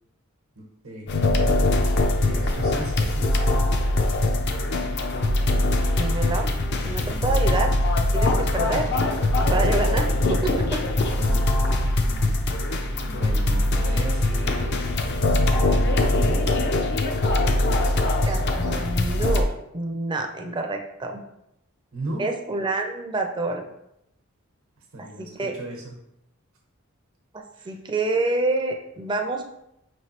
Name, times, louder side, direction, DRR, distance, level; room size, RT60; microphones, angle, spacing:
voice 1, 0.6-1.1 2.2-3.3 7.0-7.4 11.1-12.7 13.0-14.8 15.7-16.5 21.9-22.3 24.9-25.9 27.5-27.7, right 2 dB, 80° right, 1 dB, 0.9 m, -36 dB
sound 1, 1.1-19.4, left 1 dB, 55° left, 0.5 m, -22 dB
voice 2, 6.0-6.5 6.8-7.7 8.1-8.9 9.5-10.8 18.3-19.5 19.7-21.2 22.2-23.6 25.2-25.5 27.3-29.5, right 2 dB, 20° right, 3 dB, 0.5 m, -27 dB
5.2 x 3.1 x 2.9 m, 0.81 s
head